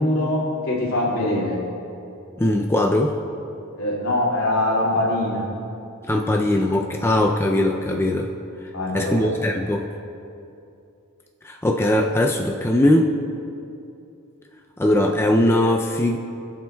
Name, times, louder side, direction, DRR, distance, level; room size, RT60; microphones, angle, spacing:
voice 1, 0.0-1.6 3.8-5.5 8.7-9.5, left 1 dB, 70° left, -4 dB, 2.5 m, -23 dB
voice 2, 2.4-3.2 6.1-8.3 8.9-9.9 11.4-13.1 14.8-16.2, left 1 dB, 10° left, 1 dB, 0.4 m, -20 dB
21.5 x 7.5 x 2.3 m, 2.7 s
head